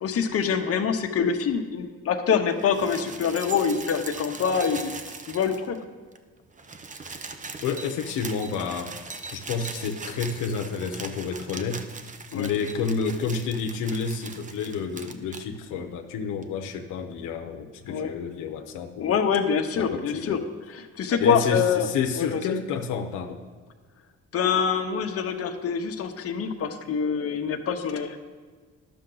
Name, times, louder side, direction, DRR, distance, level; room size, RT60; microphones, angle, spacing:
voice 1, 0.0-4.9 5.3-5.8 12.3-12.5 17.9-18.1 19.0-20.4 20.7-21.9 22.2-22.4 24.3-28.2, left 6 dB, 50° left, 5 dB, 0.9 m, -25 dB
sound 1, 2.5-5.8 6.1-6.2 6.4-15.5 16.4-16.5, right 4 dB, 25° right, 0.6 m, -40 dB
voice 2, 7.6-9.0 9.3-11.8 12.3-19.2 19.8-20.4 21.2-23.4, left 5 dB, 90° left, 4 dB, 0.8 m, -30 dB
11.5 x 6.7 x 3.9 m, 1.5 s
cardioid pair, 90°, 30 cm